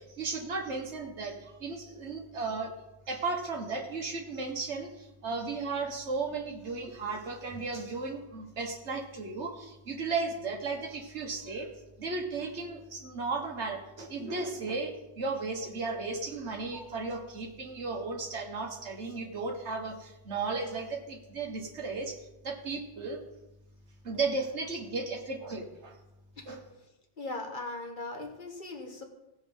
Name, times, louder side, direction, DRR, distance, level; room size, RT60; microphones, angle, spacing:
voice 1, 0.0-2.7 3.1-11.7 12.0-23.2 24.0-26.0 26.5-26.7, right 3 dB, 70° right, 3 dB, 1.7 m, -35 dB
voice 2, 27.2-29.0, left 2 dB, 45° left, 2 dB, 1.6 m, -39 dB
16.0 x 5.3 x 5.4 m, 0.96 s
omnidirectional pair, 1.2 m